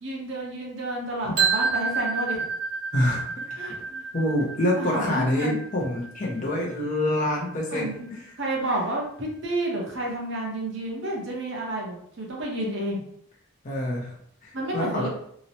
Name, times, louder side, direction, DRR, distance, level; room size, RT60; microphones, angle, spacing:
voice 1, 0.0-2.4 3.6-4.1 4.7-5.6 7.7-8.1 8.4-13.0 14.5-15.1, right 1 dB, 60° right, -1 dB, 0.7 m, -30 dB
sound 1, 1.4-7.3, right 5 dB, 90° right, 1.0 m, -30 dB
sound 2, 1.6-1.7 2.0-2.1 2.4-2.8 3.1-3.8 4.4-4.7 5.0-5.3 5.8-6.6, equal, 65° left, 0.9 m, -46 dB
voice 2, 2.9-3.7 4.1-8.3 13.6-14.1 14.4-15.1, left 1 dB, 35° left, -3 dB, 0.5 m, -27 dB
2.9 x 2.0 x 2.7 m, 0.68 s
head